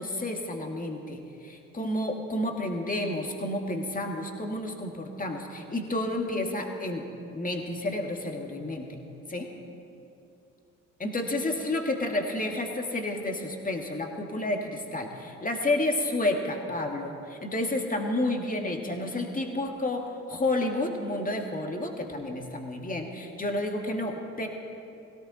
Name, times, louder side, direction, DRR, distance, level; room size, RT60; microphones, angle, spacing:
voice 1, 0.0-7.0 7.3-9.0 9.3-9.5 11.0-24.5, left 1 dB, 20° left, 2 dB, 2.4 m, -30 dB
18.5 x 17.0 x 4.3 m, 2.8 s
hypercardioid pair, 55°, 38 cm